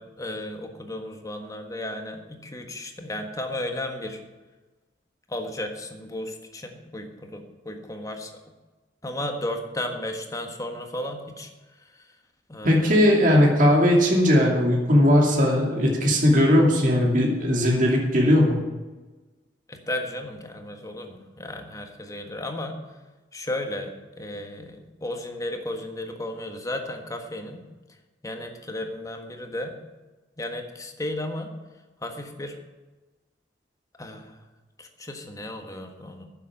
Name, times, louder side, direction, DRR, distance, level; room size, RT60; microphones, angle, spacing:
voice 1, 0.0-4.2 5.3-8.3 9.0-11.5 11.9-12.1 12.5-13.0 19.7-22.8 23.3-27.6 28.2-29.8 30.4-31.5 32.0-32.6 34.0-34.4 34.8-36.3, left 1 dB, 20° left, 4 dB, 1.5 m, -34 dB
voice 2, 12.6-18.6, left 1 dB, 50° right, -1 dB, 2.7 m, -19 dB
10.0 x 7.5 x 8.7 m, 1.2 s
head